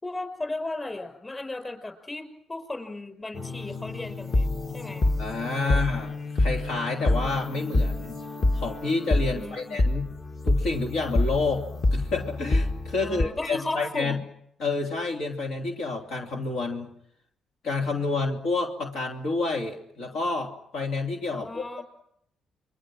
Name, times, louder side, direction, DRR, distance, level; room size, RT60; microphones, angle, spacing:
voice 1, 0.0-5.1 5.6-5.8 9.3-9.8 13.0-14.2 21.3-21.8, left 2 dB, 20° left, 8 dB, 5.5 m, -36 dB
sound 1, 3.3-13.2, left 2 dB, 40° left, 1.6 m, -27 dB
voice 2, 5.2-8.2 8.5-10.1 10.4-14.2 14.6-16.9 17.6-21.8, left 3 dB, 80° left, 2 dB, 3.0 m, -29 dB
28.0 x 23.5 x 6.2 m, 0.73 s
cardioid pair, 90°, 0 cm